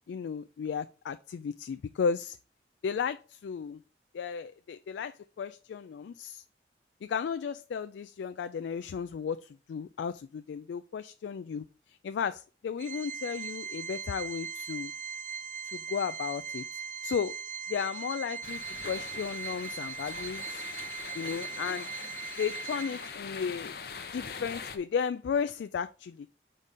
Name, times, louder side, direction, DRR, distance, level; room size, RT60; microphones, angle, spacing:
voice 1, 0.1-2.4 2.8-3.8 4.1-6.4 7.0-14.9 15.6-16.6 17.0-17.3 17.7-20.6 21.1-21.9 22.4-23.8 24.1-26.3, left 6 dB, 85° left, 0.3 m, -34 dB
Organ, 12.8-23.4, right 6 dB, 45° right, 0.4 m, -39 dB
sound 1, 18.4-24.8, left 6 dB, 60° left, 0.7 m, -42 dB
5.2 x 4.2 x 4.7 m
head